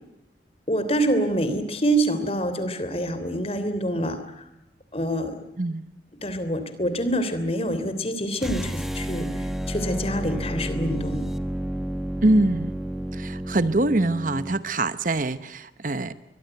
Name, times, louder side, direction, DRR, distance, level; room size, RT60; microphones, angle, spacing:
voice 1, 0.7-4.2 4.9-5.4 6.2-9.3 9.7-11.2, right 1 dB, 35° left, 11 dB, 3.2 m, -26 dB
sound 1, 8.4-14.6, equal, ahead, 1.2 m, -31 dB
voice 2, 12.2-12.7 13.1-16.1, right 2 dB, 45° right, 14 dB, 0.9 m, -23 dB
23.5 x 22.0 x 9.1 m, 0.84 s
head